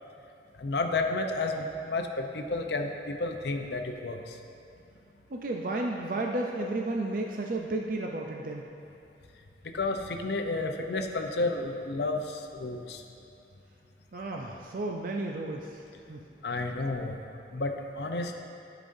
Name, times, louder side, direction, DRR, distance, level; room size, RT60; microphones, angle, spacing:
voice 1, 0.6-4.4 9.7-13.0 16.4-17.1 17.5-18.4, left 2 dB, 70° left, 4 dB, 0.6 m, -31 dB
voice 2, 5.3-8.7 14.1-16.3, right 2 dB, 50° right, 1 dB, 0.4 m, -33 dB
14.5 x 5.0 x 2.6 m, 2.8 s
head